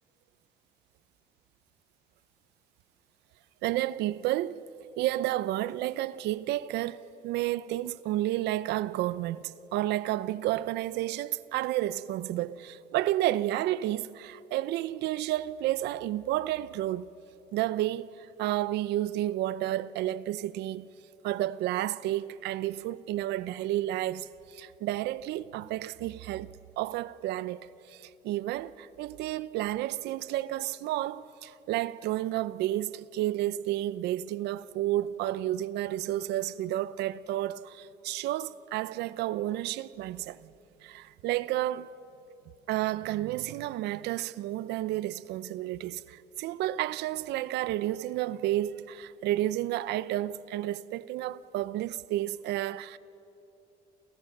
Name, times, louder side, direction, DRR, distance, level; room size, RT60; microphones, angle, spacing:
voice 1, 3.6-4.7 5.0-17.1 17.5-20.9 21.2-40.5 40.8-41.9 42.7-53.0, right 14 dB, 85° right, 0.8 m, -31 dB
Piano, 35.9-45.0 45.4-46.5 46.8-46.9 47.1-47.2 47.5-47.6 48.1-48.2, right 3 dB, 20° right, 7.3 m, -63 dB
29.0 x 28.5 x 6.7 m
cardioid pair, 110°, 17 cm